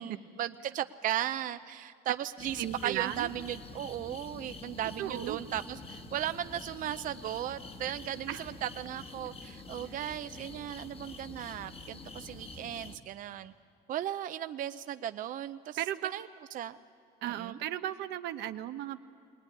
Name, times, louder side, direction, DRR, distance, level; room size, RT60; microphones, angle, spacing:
voice 1, 0.0-13.5 13.9-15.8 16.0-16.3 16.5-16.8 17.2-17.6, right 11 dB, 50° right, 11 dB, 0.5 m, -36 dB
sound 1, 2.4-13.0, left 3 dB, 35° left, 1.3 m, -47 dB
voice 2, 2.6-3.3 5.0-5.4 8.3-8.4 9.9-10.1 15.8-16.1 17.2-19.1, right 12 dB, 85° right, 9 dB, 0.9 m, -35 dB
21.0 x 19.5 x 9.8 m, 2.2 s
cardioid pair, 110°, 17 cm